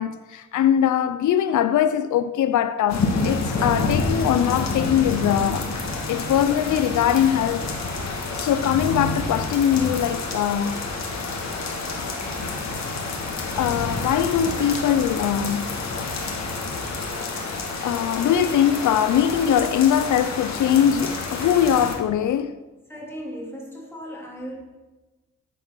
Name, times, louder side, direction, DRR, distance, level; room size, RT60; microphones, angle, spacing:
voice 1, 0.0-5.7 6.1-7.7 8.3-10.8 13.6-16.3 17.8-22.6, left 9 dB, 85° left, 0.5 m, -21 dB
sound 1, 2.9-22.0, left 3 dB, 65° left, 1.8 m, -28 dB
voice 2, 22.9-24.6, equal, 10° left, 2.9 m, -36 dB
9.6 x 7.8 x 6.1 m
wide cardioid pair, 140°, 30 cm